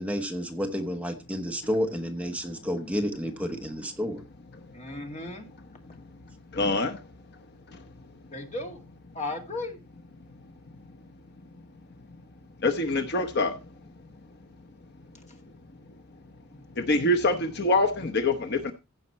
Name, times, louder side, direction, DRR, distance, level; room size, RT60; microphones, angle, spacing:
voice 1, 0.0-4.2, equal, 5° right, 1.0 m, -30 dB
voice 2, 4.7-5.5 8.3-8.8 9.1-9.8 13.1-13.2 16.5-16.6, left 2 dB, 35° left, 2.3 m, -35 dB
voice 3, 6.5-7.0 12.6-13.5 16.8-18.7, left 2 dB, 50° left, 0.9 m, -24 dB
15.5 x 5.8 x 4.3 m
head